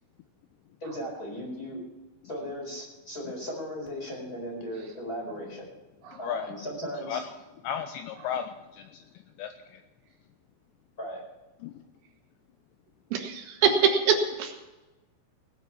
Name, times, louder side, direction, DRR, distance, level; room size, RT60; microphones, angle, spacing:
voice 1, 0.8-1.8 2.2-5.7 6.2-7.2 11.0-11.2, equal, 20° left, -1 dB, 4.2 m, -37 dB
voice 2, 6.1-6.5 7.1-7.2 7.6-9.8 11.6-11.8, left 8 dB, 85° left, 8 dB, 2.6 m, -35 dB
voice 3, 13.1-14.5, right 6 dB, 75° right, 3 dB, 3.6 m, -24 dB
18.5 x 8.0 x 5.8 m, 1.1 s
omnidirectional pair, 5.5 m